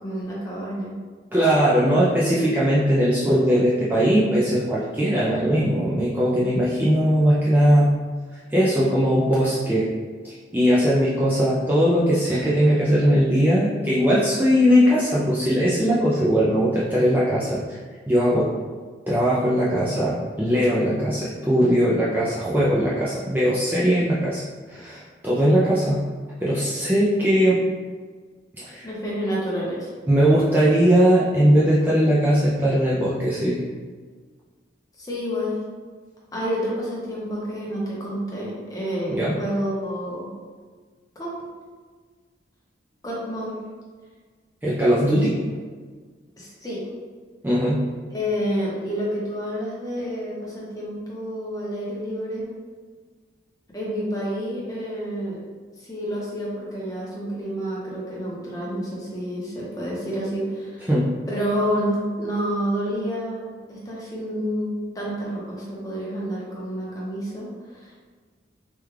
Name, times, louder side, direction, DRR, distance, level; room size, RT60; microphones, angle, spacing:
voice 1, 0.0-0.9 28.8-29.9 35.0-35.6 36.3-40.3 41.2-41.3 43.0-43.5 45.2-45.3 46.4-46.8 48.1-52.5 53.7-55.4 55.8-60.9 61.3-68.1, equal, 20° left, -5 dB, 0.7 m, -29 dB
voice 2, 1.3-7.9 8.3-9.9 10.2-17.8 18.1-18.5 19.1-24.4 24.7-26.0 26.4-27.6 28.6-28.9 30.1-33.6 39.1-39.3 44.6-45.3 47.4-47.8 60.9-61.1, equal, 10° right, -8 dB, 0.3 m, -20 dB
3.4 x 2.3 x 3.1 m, 1.5 s
head